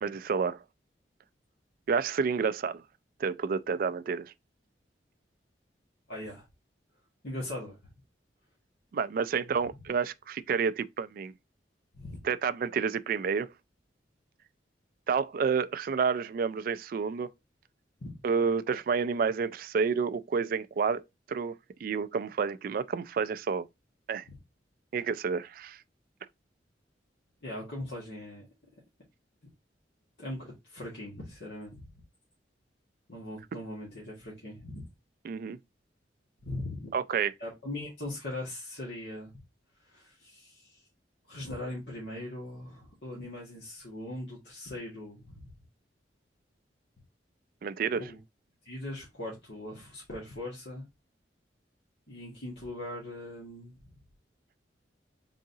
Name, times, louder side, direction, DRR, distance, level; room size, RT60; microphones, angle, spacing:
voice 1, 0.0-0.6 1.9-2.8 3.2-4.3 8.9-11.3 12.2-13.5 15.1-17.3 18.2-21.0 21.3-21.5 21.8-23.7 24.1-24.2 24.9-25.8 35.2-35.6 36.9-37.3 47.6-48.0, right 6 dB, 50° right, 0.3 m, -29 dB
voice 2, 6.1-6.4 7.2-7.8 9.4-9.5 11.9-12.2 18.0-18.1 27.4-28.5 30.2-31.9 33.1-34.8 36.4-36.9 37.4-39.3 39.8-40.8 41.3-45.5 48.0-48.2 48.6-50.8 52.1-53.8, left 1 dB, 70° left, 1.5 m, -40 dB
3.9 x 3.7 x 2.7 m
head